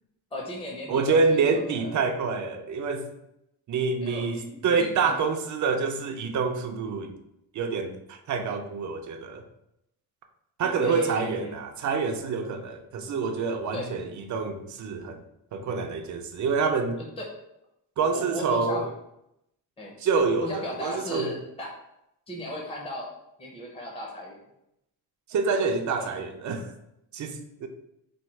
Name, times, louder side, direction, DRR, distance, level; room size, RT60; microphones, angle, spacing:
voice 1, 0.3-2.0 4.0-5.1 10.6-11.5 13.7-13.9 17.2-17.3 18.0-18.8 19.8-19.9 20.4-21.7 22.3-23.1 23.4-24.4 26.0-26.1, left 1 dB, 15° left, -2 dB, 0.7 m, -36 dB
voice 2, 0.9-3.1 3.7-7.1 7.5-9.4 10.6-15.2 15.5-17.0 18.0-18.9 20.0-21.3 25.3-26.7 27.1-27.7, right 4 dB, 50° right, 5 dB, 0.5 m, -27 dB
4.3 x 2.3 x 4.6 m, 0.83 s
cardioid pair, 175°, 38 cm